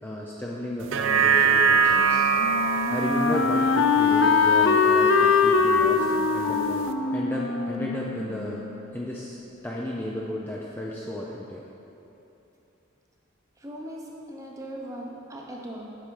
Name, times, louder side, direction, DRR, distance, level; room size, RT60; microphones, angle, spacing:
voice 1, 0.0-2.2 2.9-6.8 7.1-8.6 8.9-11.6, left 1 dB, 10° left, -4 dB, 0.5 m, -33 dB
sound 1, 0.8-5.4 5.8-5.9, right 6 dB, 70° right, 0.4 m, -23 dB
Wind instrument woodwind instrument, 2.0-8.8, left 5 dB, 65° left, 0.4 m, -22 dB
voice 2, 13.6-15.9, right 1 dB, 15° right, -2 dB, 0.9 m, -39 dB
8.5 x 5.7 x 4.8 m, 2.9 s
head